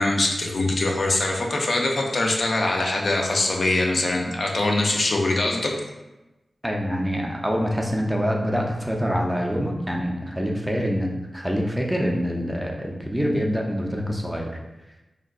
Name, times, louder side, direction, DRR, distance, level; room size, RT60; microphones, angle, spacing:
voice 1, 0.0-5.7, left 2 dB, 60° left, 1 dB, 0.4 m, -23 dB
voice 2, 6.6-14.6, equal, 5° right, 0 dB, 0.4 m, -25 dB
3.6 x 2.2 x 2.3 m, 1.0 s
wide cardioid pair, 100°, 0 cm